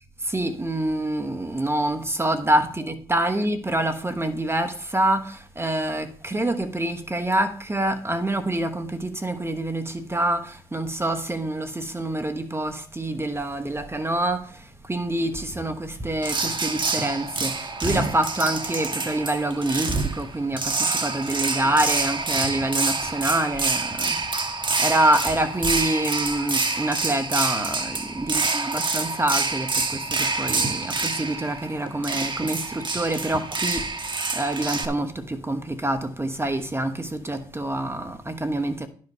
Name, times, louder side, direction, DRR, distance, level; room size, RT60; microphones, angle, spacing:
voice 1, 0.2-38.9, right 1 dB, 15° right, 1.2 m, -26 dB
sound 1, 16.2-34.8, right 3 dB, 35° right, 1.4 m, -27 dB
12.0 x 4.8 x 5.5 m
cardioid pair, 70°, 15 cm